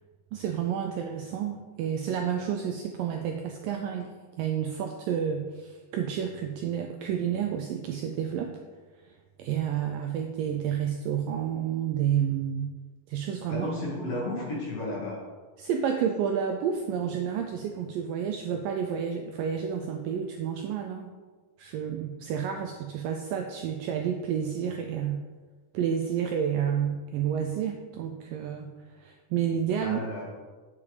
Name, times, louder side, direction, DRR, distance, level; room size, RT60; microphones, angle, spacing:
voice 1, 0.3-4.1 4.4-8.6 9.4-12.7 13.1-13.7 15.6-21.1 21.6-25.2 25.7-28.7 29.0-30.0, right 8 dB, 80° right, 4 dB, 2.0 m, -30 dB
voice 2, 13.5-15.2 29.8-30.2, left 1 dB, 50° left, -4 dB, 2.4 m, -33 dB
8.7 x 7.0 x 5.0 m, 1.4 s
omnidirectional pair, 4.6 m